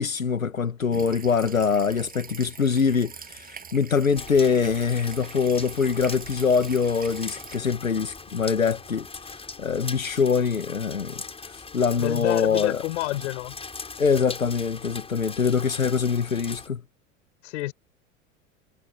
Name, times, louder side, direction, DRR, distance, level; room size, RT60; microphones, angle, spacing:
voice 1, 0.0-12.8 14.0-16.8, left 5 dB, 85° left, 1.7 m, -24 dB
sound 1, 0.9-7.7 8.3-8.4 8.8-8.9 9.2-9.3, right 6 dB, 20° right, 7.4 m, -44 dB
sound 2, 4.2-16.7, left 4 dB, 15° left, 6.8 m, -40 dB
voice 2, 12.0-13.6 17.4-17.7, left 18 dB, 60° left, 7.0 m, -28 dB
figure-of-eight pair, 85°, 40 cm